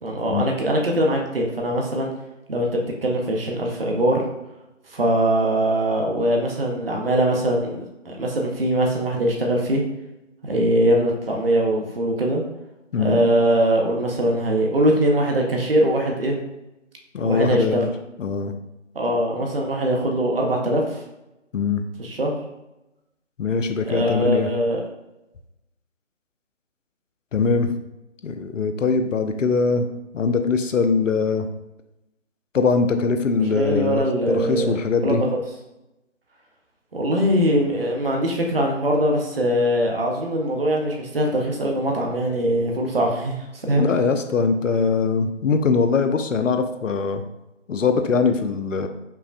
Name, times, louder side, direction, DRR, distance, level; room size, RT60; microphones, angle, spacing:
voice 1, 0.0-2.1 2.5-4.2 4.9-9.8 10.4-12.4 13.0-16.4 17.2-17.8 18.9-21.0 22.0-22.4 23.8-24.8 33.4-34.8 35.0-35.3 36.9-43.9, right 1 dB, 50° right, 0 dB, 0.7 m, -22 dB
voice 2, 17.1-17.9 18.2-18.5 21.5-21.8 23.4-24.5 27.3-27.7 28.2-29.9 30.1-31.5 32.5-35.2 43.7-47.2 47.7-48.9, left 4 dB, 85° left, 7 dB, 0.5 m, -22 dB
5.5 x 2.1 x 2.5 m, 0.94 s
figure-of-eight pair, 160°, 37 cm